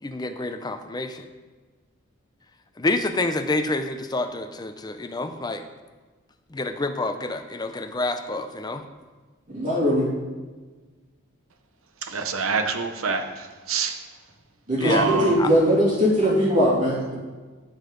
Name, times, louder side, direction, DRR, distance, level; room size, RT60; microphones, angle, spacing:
voice 1, 0.0-1.3 2.8-5.6 6.5-8.8 14.8-15.1 15.4-15.5, left 2 dB, 20° left, 7 dB, 0.5 m, -28 dB
voice 2, 9.5-10.1 14.7-17.2, equal, 40° right, -6 dB, 3.0 m, -20 dB
voice 3, 12.1-14.0 14.8-15.3, right 4 dB, 80° right, 7 dB, 0.9 m, -26 dB
14.0 x 5.3 x 3.9 m, 1.3 s
head